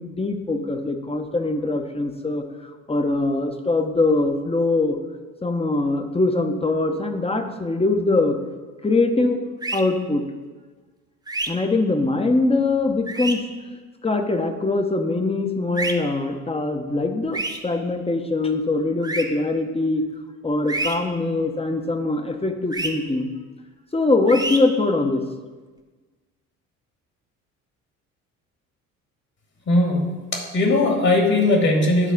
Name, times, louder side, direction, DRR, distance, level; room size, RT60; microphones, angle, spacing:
voice 1, 0.0-2.4 2.9-5.0 5.4-8.4 8.8-9.4 9.7-10.2 11.5-13.4 14.0-20.0 20.4-23.3 23.9-25.2, left 2 dB, 15° left, 6 dB, 0.9 m, -22 dB
sound 1, 9.6-9.8 11.3-11.5 13.1-13.3 15.7-15.9 17.3-17.6 19.0-19.2 20.7-20.9 22.7-22.9 24.3-24.6, right 2 dB, 10° right, 1.1 m, -27 dB
voice 2, 29.7-32.1, left 2 dB, 40° left, 2 dB, 1.8 m, -19 dB
10.0 x 4.1 x 5.4 m, 1.3 s
figure-of-eight pair, 55°, 40 cm